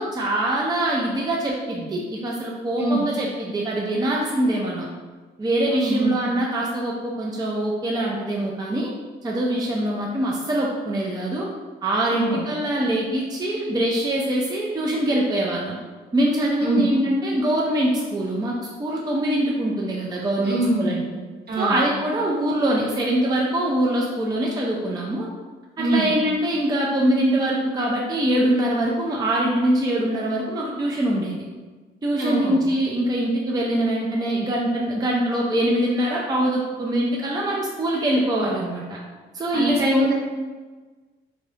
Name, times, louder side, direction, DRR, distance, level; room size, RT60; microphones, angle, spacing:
voice 1, 0.0-4.9 5.4-8.9 9.2-11.5 11.8-15.8 16.1-21.0 21.6-25.3 25.8-31.5 32.0-39.0 39.3-40.1, right 1 dB, 20° right, -3 dB, 0.4 m, -23 dB
voice 2, 5.7-6.2 12.1-12.5 16.6-16.9 20.4-21.0 21.5-21.8 25.8-26.1 32.2-32.6 39.5-40.1, right 2 dB, 55° right, -3 dB, 1.0 m, -24 dB
2.7 x 2.5 x 3.3 m, 1.4 s
cardioid pair, 90°, 20 cm